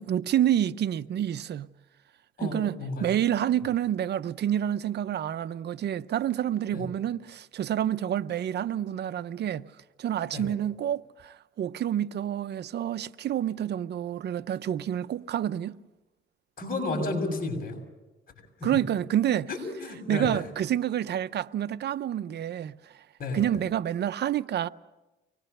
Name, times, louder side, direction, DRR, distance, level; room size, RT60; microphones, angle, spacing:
voice 1, 0.0-1.7 2.4-9.6 10.0-15.8 18.6-19.5 20.1-22.7 23.3-24.7, right 10 dB, 60° right, 0.7 m, -28 dB
voice 2, 2.4-3.1 6.7-6.8 10.3-10.4 16.6-17.8 18.6-18.7 19.5-20.3 23.2-23.4, left 2 dB, 45° left, 6.4 m, -32 dB
24.5 x 19.0 x 6.7 m
cardioid pair, 90°, 20 cm